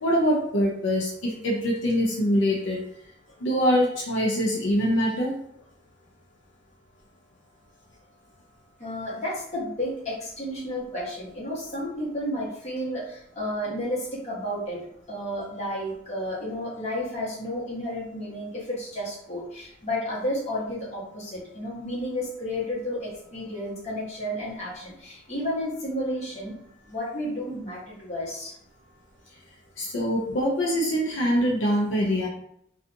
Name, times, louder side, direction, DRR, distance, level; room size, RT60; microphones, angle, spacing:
voice 1, 0.0-2.8 3.4-5.4 29.8-32.3, equal, 80° left, -2 dB, 0.5 m, -24 dB
voice 2, 8.8-14.8 15.1-26.6 26.9-28.5, left 1 dB, 35° left, -7 dB, 1.1 m, -32 dB
2.6 x 2.3 x 2.5 m, 0.69 s
head